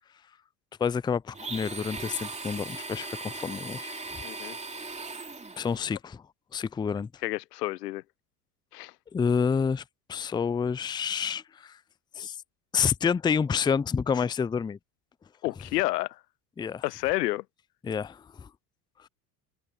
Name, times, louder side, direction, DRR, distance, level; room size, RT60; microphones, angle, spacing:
voice 1, 0.8-4.2 5.6-6.2 6.5-7.1 9.1-9.8 10.1-11.8 12.2-12.4 12.7-14.8 16.6-16.8 17.8-18.5, left 6 dB, 10° left, 0.4 m, -28 dB
Domestic sounds home sounds, 1.3-5.8, right 3 dB, 15° right, 2.6 m, -38 dB
voice 2, 4.2-4.6 7.2-8.0 8.7-8.9 15.4-16.2 16.8-17.4, left 18 dB, 80° left, 0.7 m, -30 dB
hypercardioid pair, 85°, 47 cm